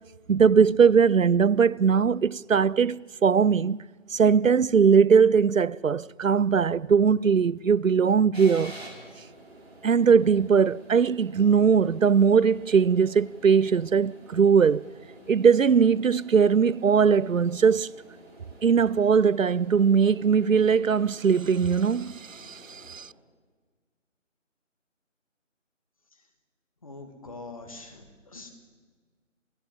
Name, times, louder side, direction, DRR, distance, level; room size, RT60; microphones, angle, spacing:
voice 1, 0.3-3.8 4.1-8.7 9.8-14.9 15.3-18.0 18.6-23.1, right 6 dB, 90° right, 0.6 m, -20 dB
sound 1, 8.3-23.0, right 1 dB, 55° right, 5.0 m, -49 dB
voice 2, 26.8-28.5, left 3 dB, 25° left, 2.2 m, -43 dB
29.0 x 15.0 x 7.6 m
figure-of-eight pair, 165°, 38 cm